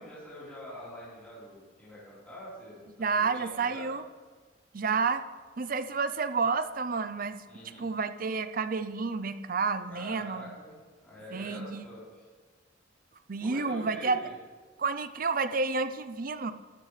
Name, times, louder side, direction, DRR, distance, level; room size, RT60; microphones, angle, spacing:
voice 1, 0.0-3.9 7.5-7.9 9.9-10.8 11.0-12.2 13.4-14.3, equal, 5° left, -10 dB, 4.1 m, -46 dB
voice 2, 3.0-4.0 4.7-5.2 5.6-7.4 7.8-10.6 11.3-11.8 13.3-14.2 14.8-16.5, right 4 dB, 45° right, 11 dB, 0.6 m, -30 dB
13.0 x 13.0 x 3.3 m, 1.4 s
head